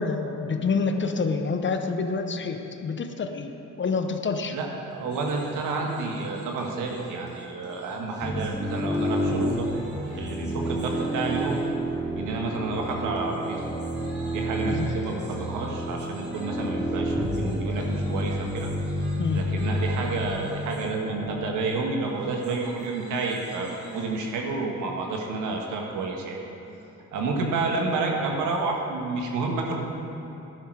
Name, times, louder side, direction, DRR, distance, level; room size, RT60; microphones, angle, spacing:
voice 1, 0.0-3.5 3.8-4.6 14.7-14.9 16.6-16.7 19.2-19.4 27.4-27.6, left 4 dB, 40° left, 6 dB, 1.0 m, -27 dB
voice 2, 4.5-9.8 10.2-11.6 12.2-13.6 14.3-18.7 19.3-26.4 27.1-29.8, right 3 dB, 90° right, 1 dB, 1.7 m, -30 dB
sound 1, 5.0-11.8 12.8-20.9 22.1-24.3, right 1 dB, 35° right, 3.0 m, -48 dB
sound 2, 8.2-21.5, equal, 10° right, 2.9 m, -29 dB
12.0 x 11.0 x 4.8 m, 2.9 s
cardioid pair, 90°, 30 cm